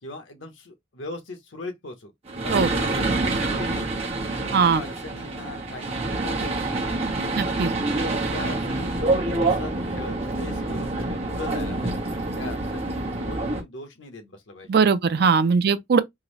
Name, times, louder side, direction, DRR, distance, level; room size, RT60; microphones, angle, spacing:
voice 1, 0.0-2.1 2.4-3.9 4.5-7.0 8.3-12.0 12.4-14.8 15.1-15.3, left 2 dB, 85° left, 1.0 m, -40 dB
sound 1, 2.3-13.6, right 2 dB, 35° right, 1.0 m, -27 dB
voice 2, 4.5-4.8 7.3-7.7 14.7-16.0, right 5 dB, 55° right, 0.4 m, -20 dB
3.7 x 2.0 x 3.1 m
head